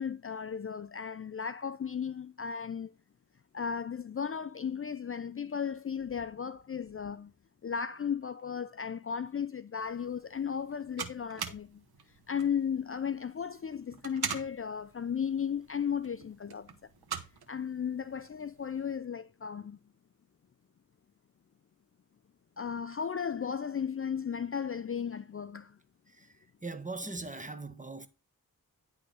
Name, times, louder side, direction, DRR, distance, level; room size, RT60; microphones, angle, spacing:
voice 1, 0.0-2.9 3.5-7.3 7.6-11.8 12.3-16.7 17.5-19.8 22.6-25.8, left 7 dB, 40° left, 0.5 m, -35 dB
sound 1, 9.8-19.0, right 7 dB, 90° right, 1.1 m, -44 dB
voice 2, 26.6-28.1, right 3 dB, 20° right, 1.4 m, -40 dB
10.5 x 3.6 x 6.2 m
cardioid pair, 45°, 37 cm